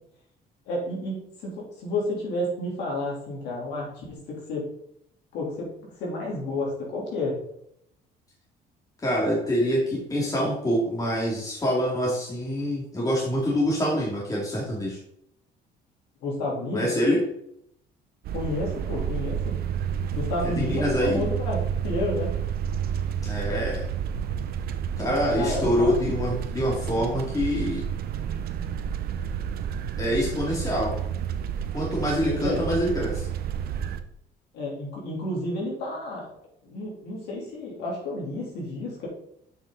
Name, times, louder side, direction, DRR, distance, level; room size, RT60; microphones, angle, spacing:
voice 1, 0.6-4.6 5.3-5.7 6.0-7.4 16.2-16.9 18.3-19.5 20.1-22.4 25.4-25.9 32.2-32.6 34.5-36.3 36.6-39.1, left 2 dB, 85° left, -3 dB, 3.3 m, -31 dB
voice 2, 9.0-15.0 16.7-17.2 20.4-21.3 23.2-23.8 25.0-27.8 30.0-30.9 31.7-33.3, equal, 20° left, -5 dB, 2.3 m, -25 dB
sound 1, 18.2-34.0, right 8 dB, 65° right, 0.7 m, -30 dB
7.2 x 5.9 x 3.9 m, 0.74 s
cardioid pair, 110°, 17 cm